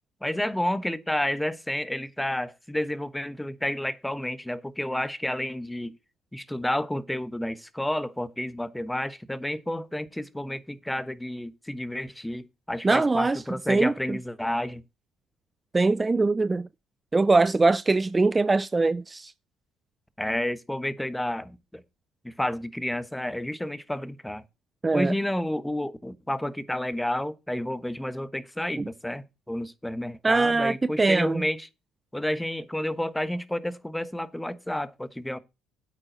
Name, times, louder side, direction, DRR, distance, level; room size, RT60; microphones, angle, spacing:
voice 1, 0.2-5.9 6.3-14.8 20.2-21.8 22.2-24.4 24.9-31.7 32.1-35.4, left 1 dB, 5° left, 1.1 m, -30 dB
voice 2, 12.8-13.4 13.7-14.2 15.7-16.7 17.1-19.3 24.8-25.1 28.8-28.9 30.2-31.4, right 3 dB, 20° right, 0.4 m, -22 dB
9.1 x 8.7 x 3.9 m
supercardioid pair, 75°, 0 cm